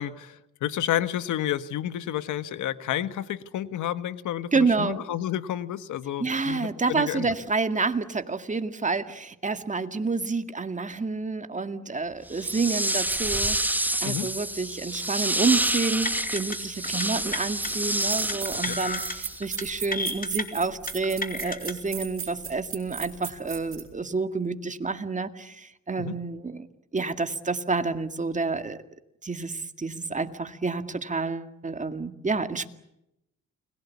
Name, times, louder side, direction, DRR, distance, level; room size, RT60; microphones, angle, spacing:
voice 1, 0.0-7.3 14.0-14.3 18.6-18.8 26.0-26.2, left 11 dB, 75° left, 13 dB, 1.5 m, -30 dB
voice 2, 4.5-5.0 6.2-13.6 13.8-26.7 26.9-28.8 29.2-32.7, right 4 dB, 25° right, 8 dB, 2.1 m, -29 dB
sound 1, 12.3-19.5, right 1 dB, 5° right, 1.3 m, -28 dB
sound 2, 16.0-16.6 16.8-17.0 17.3-17.7 18.3-19.1 19.4-19.6 19.9-20.4 20.9-21.7, left 3 dB, 30° left, 3.7 m, -32 dB
sound 3, 17.4-17.5 18.0-23.9, right 7 dB, 45° right, 6.7 m, -37 dB
29.5 x 22.0 x 8.5 m, 0.86 s
cardioid pair, 90°, 30 cm